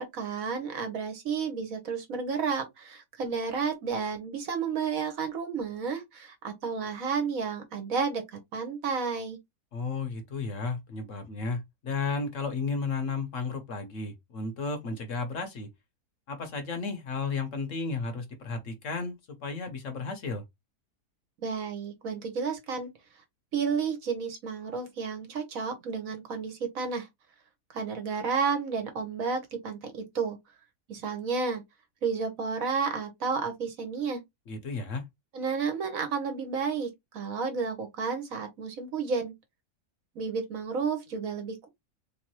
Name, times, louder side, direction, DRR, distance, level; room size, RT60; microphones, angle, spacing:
voice 1, 0.0-8.2 8.5-9.4 21.4-22.9 23.5-27.1 27.7-30.4 30.9-31.6 32.0-34.2 35.3-39.3 40.1-41.7, right 5 dB, 65° right, 1.3 m, -31 dB
voice 2, 9.7-15.7 16.3-20.4 34.5-35.0, left 4 dB, 60° left, 1.0 m, -33 dB
3.4 x 3.1 x 3.0 m
omnidirectional pair, 1.7 m